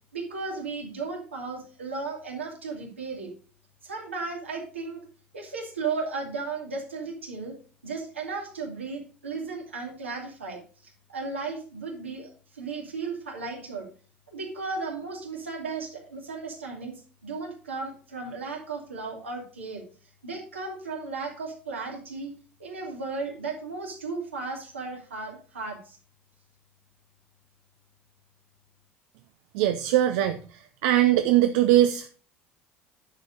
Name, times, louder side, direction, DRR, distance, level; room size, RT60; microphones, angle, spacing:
voice 1, 0.1-3.3 3.8-5.0 5.3-7.5 7.8-13.9 14.3-19.8 20.2-22.3 22.6-26.0, right 4 dB, 90° right, -1 dB, 2.6 m, -35 dB
voice 2, 29.5-30.4 30.8-32.1, right 13 dB, 65° right, 9 dB, 0.6 m, -21 dB
10.5 x 5.2 x 5.0 m, 0.40 s
hypercardioid pair, 65°, 6 cm